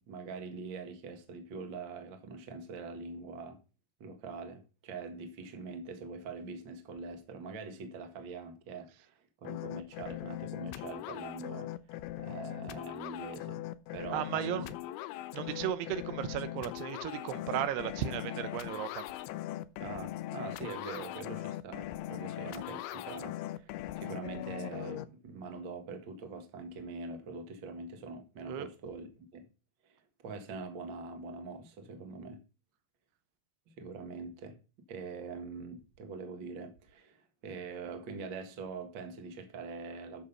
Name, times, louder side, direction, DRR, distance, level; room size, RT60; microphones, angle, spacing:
voice 1, 0.0-3.6 4.0-9.1 9.4-11.7 12.2-13.6 13.9-14.7 19.8-29.5 29.8-32.4 33.7-34.6 34.9-40.2, right 4 dB, 45° right, 1.6 m, -43 dB
sound 1, 9.5-25.1, left 14 dB, 80° left, 2.6 m, -40 dB
voice 2, 14.1-14.7 15.3-19.1 28.5-28.7, right 11 dB, 90° right, 2.9 m, -35 dB
10.5 x 6.8 x 5.4 m
omnidirectional pair, 4.5 m